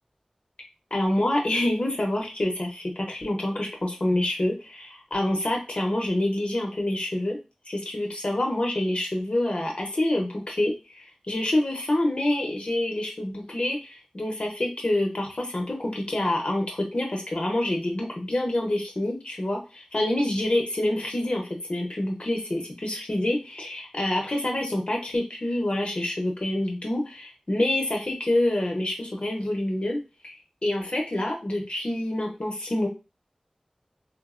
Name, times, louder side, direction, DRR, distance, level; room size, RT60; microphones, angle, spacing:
voice 1, 0.9-7.4 7.7-30.0 30.2-30.3 30.6-32.9, left 1 dB, 55° left, 1 dB, 0.6 m, -27 dB
3.3 x 2.0 x 2.4 m, 0.29 s
wide cardioid pair, 60°, 2 cm